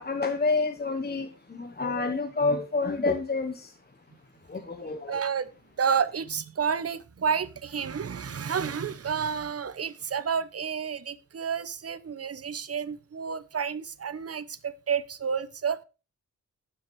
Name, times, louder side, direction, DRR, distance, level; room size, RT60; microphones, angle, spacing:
voice 1, 0.0-3.7 4.5-5.2, left 3 dB, 30° left, 0.9 m, -28 dB
voice 2, 5.1-5.5 5.8-15.8, right 7 dB, 50° right, 0.8 m, -30 dB
12.5 x 5.8 x 4.6 m
wide cardioid pair, 115°, 30 cm